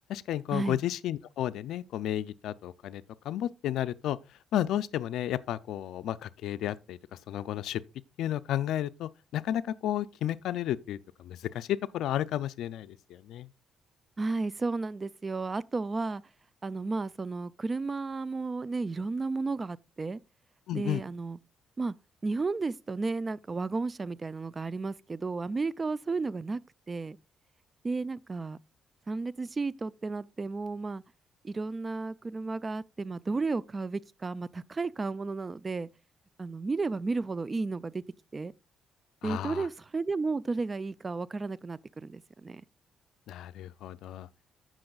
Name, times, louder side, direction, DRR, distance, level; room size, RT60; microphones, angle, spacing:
voice 1, 0.1-4.2 4.5-7.0 7.3-7.8 8.2-13.5 20.7-21.0 39.2-39.7 43.3-44.3, left 12 dB, 80° left, 0.4 m, -32 dB
voice 2, 14.2-16.2 16.6-20.2 20.7-21.4 21.8-21.9 22.2-26.6 26.9-27.2 27.8-28.6 29.1-31.0 31.4-35.9 36.4-38.0 38.3-38.5 39.2-42.6, right 3 dB, 30° right, 0.4 m, -33 dB
16.5 x 6.1 x 2.3 m
cardioid pair, 90°, 0 cm